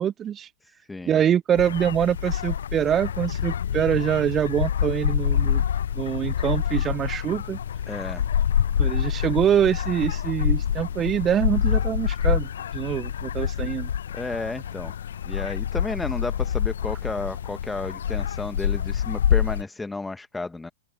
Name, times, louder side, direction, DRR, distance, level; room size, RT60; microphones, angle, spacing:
voice 1, 0.0-0.5 1.1-5.6 5.9-7.6 8.8-13.9, right 9 dB, 25° right, 0.6 m, -24 dB
voice 2, 0.6-1.2 7.9-8.2 14.1-14.9 15.2-20.7, left 3 dB, 10° left, 1.6 m, -32 dB
sound 1, 1.6-19.6, left 9 dB, 70° left, 0.8 m, -26 dB
sound 2, 8.6-14.7, right 7 dB, 75° right, 3.0 m, -53 dB
open air
figure-of-eight pair, 100°, 0 cm